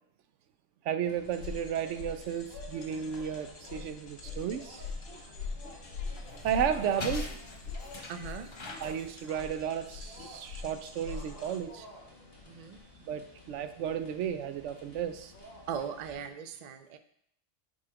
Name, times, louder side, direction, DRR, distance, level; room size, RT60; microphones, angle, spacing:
voice 1, 0.8-4.8 6.4-7.3 8.8-11.9 13.0-15.3, right 8 dB, 75° right, 10 dB, 0.9 m, -33 dB
sound 1, 1.0-16.3, left 1 dB, 50° left, 1.8 m, -53 dB
sound 2, 1.3-11.6, left 4 dB, 90° left, 1.5 m, -42 dB
sound 3, 5.0-10.5, left 2 dB, 30° left, 0.6 m, -45 dB
voice 2, 8.1-8.5 12.5-12.8 15.7-17.0, right 7 dB, 55° right, 8 dB, 0.5 m, -39 dB
7.5 x 4.2 x 4.7 m, 0.70 s
omnidirectional pair, 1.3 m